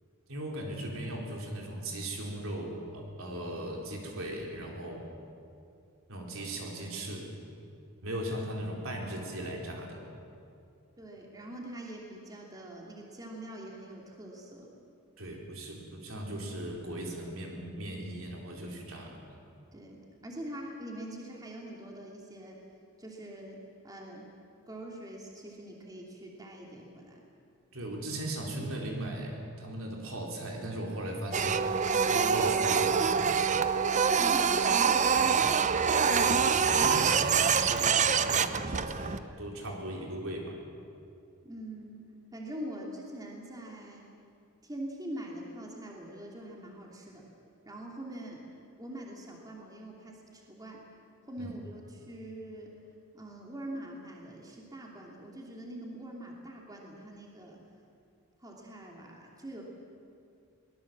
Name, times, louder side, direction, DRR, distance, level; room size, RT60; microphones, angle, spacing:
voice 1, 0.3-5.1 6.1-7.3 8.0-10.1 15.2-19.2 27.7-31.8 32.1-33.6 36.1-40.6 51.4-51.5, right 1 dB, 65° right, 0 dB, 4.2 m, -38 dB
voice 2, 11.0-14.7 19.7-22.6 23.0-24.3 24.7-27.2 33.9-35.5 41.4-42.1 42.3-44.1 44.6-47.2 47.6-48.4 48.8-50.8 51.3-52.7 53.1-57.6 58.4-59.6, right 1 dB, 15° right, -1 dB, 2.8 m, -43 dB
Printer, 31.3-39.2, right 6 dB, 35° right, 0.7 m, -25 dB
23.0 x 19.5 x 7.6 m, 2.5 s
head